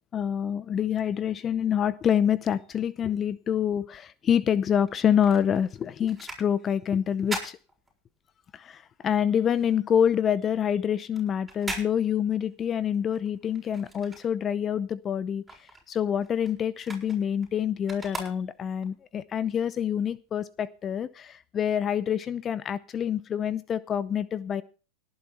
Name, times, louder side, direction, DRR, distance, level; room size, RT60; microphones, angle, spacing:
voice 1, 0.0-7.6 8.5-24.6, left 8 dB, 30° left, 18 dB, 0.6 m, -27 dB
sound 1, 4.9-8.5 8.8-14.8 15.1-18.9 19.4-19.5, right 2 dB, 10° right, 6.8 m, -41 dB
18.5 x 9.6 x 4.3 m, 0.35 s
hypercardioid pair, 105°, 0 cm